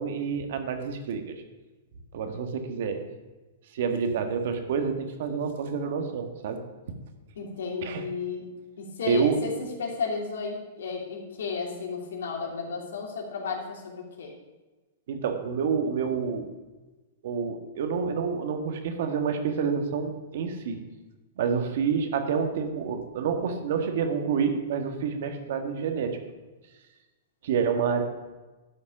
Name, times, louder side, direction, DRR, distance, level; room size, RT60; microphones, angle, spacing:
voice 1, 0.0-1.4 2.1-3.0 3.7-6.6 7.8-8.0 9.0-9.4 15.1-16.5 17.2-20.8 21.4-26.2 27.4-28.0, right 6 dB, 65° right, 6 dB, 1.6 m, -28 dB
voice 2, 7.4-8.4 8.8-14.3, left 5 dB, 85° left, 0 dB, 2.9 m, -33 dB
11.5 x 5.5 x 7.2 m, 1.2 s
hypercardioid pair, 150°, 0 cm